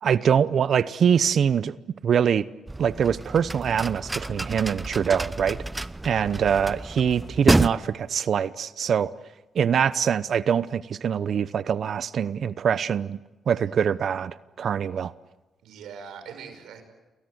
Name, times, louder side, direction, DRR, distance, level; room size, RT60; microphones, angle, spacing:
voice 1, 0.0-1.8 2.0-2.4 2.8-5.6 6.0-9.1 9.5-13.2 13.5-15.1, right 7 dB, 60° right, 0.8 m, -24 dB
sound 1, 2.7-7.7, right 2 dB, 15° right, 0.9 m, -28 dB
voice 2, 13.5-13.9 15.6-16.8, right 6 dB, 85° right, 5.4 m, -43 dB
29.0 x 23.0 x 8.0 m
cardioid pair, 70°, 0 cm